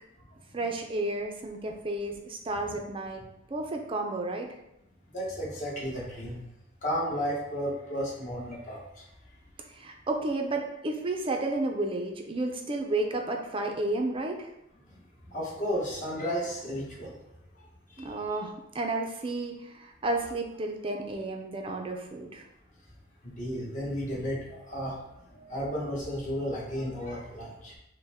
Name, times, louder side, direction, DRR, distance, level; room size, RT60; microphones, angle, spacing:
voice 1, 0.5-3.2 3.5-4.5 9.7-14.4 18.0-22.4, right 2 dB, 25° right, 3 dB, 0.5 m, -32 dB
voice 2, 5.1-6.4 6.8-9.0 15.2-17.2 17.9-18.4 23.2-25.0 25.3-27.8, equal, 40° left, -5 dB, 1.2 m, -33 dB
5.4 x 2.2 x 3.5 m, 0.84 s
head